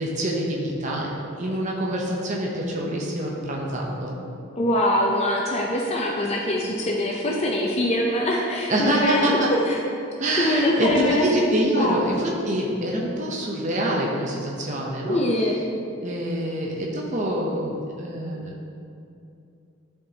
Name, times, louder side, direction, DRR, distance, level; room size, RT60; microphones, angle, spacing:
voice 1, 0.0-4.2 8.7-9.5 10.2-15.2 16.0-18.7, right 1 dB, 35° right, -2 dB, 0.7 m, -25 dB
voice 2, 4.6-9.8 10.4-11.2 11.8-12.2 15.0-15.6, left 1 dB, 30° left, -1 dB, 0.5 m, -23 dB
10.5 x 4.4 x 2.8 m, 2.6 s
head